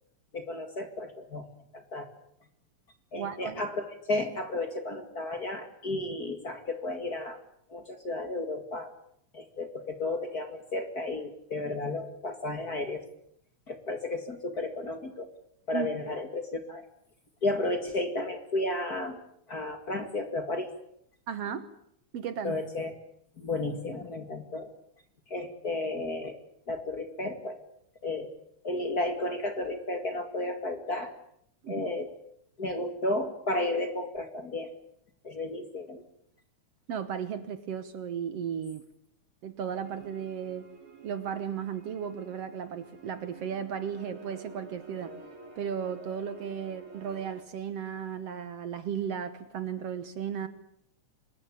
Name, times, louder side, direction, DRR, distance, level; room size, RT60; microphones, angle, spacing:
voice 1, 0.3-1.5 1.7-2.1 3.1-7.4 7.7-8.9 9.3-13.0 13.7-15.3 15.7-16.9 17.4-19.2 19.5-20.7 22.4-22.9 23.4-24.7 25.3-26.4 26.7-27.6 28.0-28.3 28.6-31.1 31.7-32.1 32.6-34.7 35.2-36.0, left 2 dB, 35° left, 7 dB, 2.2 m, -33 dB
voice 2, 3.1-3.6 15.7-15.9 21.3-21.7 22.1-22.5 31.6-31.8 36.9-38.8 39.4-40.7 41.0-45.2 45.6-50.5, right 8 dB, 60° right, 12 dB, 2.0 m, -35 dB
sound 1, 39.7-47.4, right 4 dB, 85° right, 5.7 m, -50 dB
24.5 x 20.5 x 8.4 m, 0.71 s
omnidirectional pair, 3.4 m